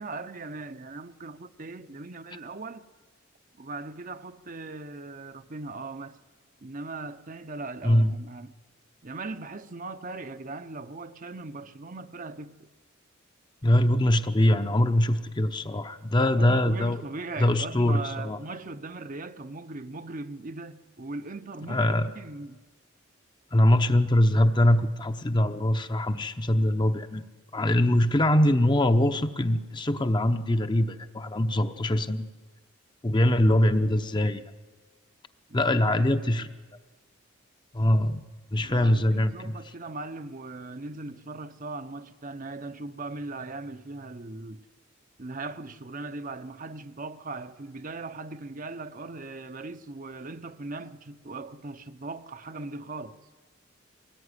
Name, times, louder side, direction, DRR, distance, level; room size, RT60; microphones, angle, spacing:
voice 1, 0.0-2.9 3.6-6.2 6.6-8.5 9.0-12.7 16.4-22.6 35.5-36.5 38.6-44.6 45.2-53.2, right 3 dB, 40° right, 0.8 m, -39 dB
voice 2, 7.8-8.1 13.6-17.0 17.4-18.4 21.7-22.1 23.5-27.2 27.5-32.3 33.0-34.4 35.5-36.5 37.7-38.2 38.5-39.5, left 1 dB, 20° left, 0.8 m, -23 dB
23.0 x 19.0 x 9.8 m
head